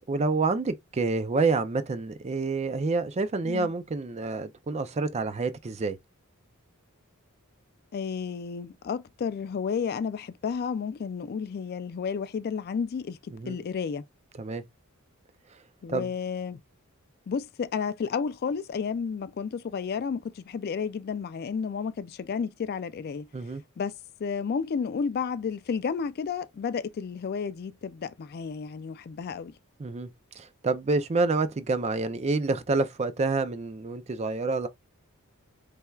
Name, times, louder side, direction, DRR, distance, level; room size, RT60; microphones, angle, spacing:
voice 1, 0.1-6.0 13.3-13.6 14.4-14.6 15.9-16.1 23.3-23.6 29.8-30.1 30.4-34.7, right 3 dB, 30° right, 0.4 m, -28 dB
voice 2, 7.9-13.2 13.5-14.0 15.8-16.6 17.3-23.3 23.8-23.9 24.2-29.5, left 6 dB, 45° left, 0.3 m, -32 dB
4.3 x 3.4 x 2.3 m
head